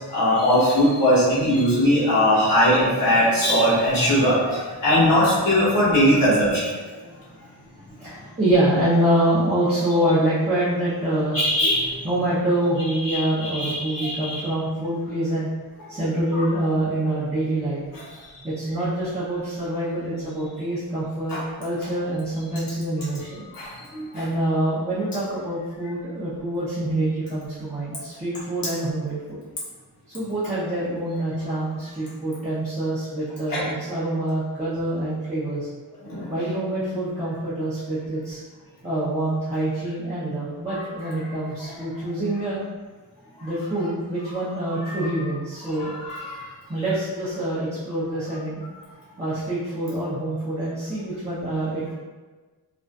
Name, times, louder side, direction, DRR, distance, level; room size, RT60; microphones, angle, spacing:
voice 1, 0.1-6.7 11.3-12.0 13.0-14.4 16.3-16.4 17.9-18.1 21.3-21.4 23.5-24.3 33.5-33.6 36.0-36.4 40.7-40.8 41.7-41.8 44.9-45.1 45.6-46.4, equal, 60° left, -9 dB, 1.0 m, -21 dB
voice 2, 8.0-11.4 12.0-15.5 15.9-17.8 18.1-23.5 24.1-29.4 30.1-35.7 36.3-38.4 38.8-42.6 43.4-45.9 46.7-48.6 49.2-51.9, right 1 dB, 15° right, -12 dB, 0.6 m, -25 dB
2.5 x 2.4 x 2.2 m, 1.3 s
wide cardioid pair, 150°, 40 cm